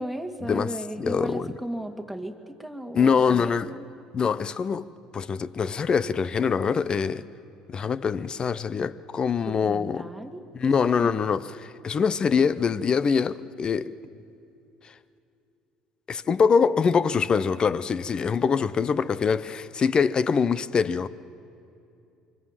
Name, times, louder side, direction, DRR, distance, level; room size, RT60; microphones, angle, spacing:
voice 1, 0.0-3.9 9.4-11.2, equal, ahead, 2.2 m, -35 dB
voice 2, 1.0-1.5 2.9-3.7 4.1-4.9 5.1-7.3 7.7-10.1 10.5-13.9 16.1-21.1, left 6 dB, 40° left, 0.8 m, -24 dB
25.0 x 23.5 x 7.5 m
supercardioid pair, 75°, 2 cm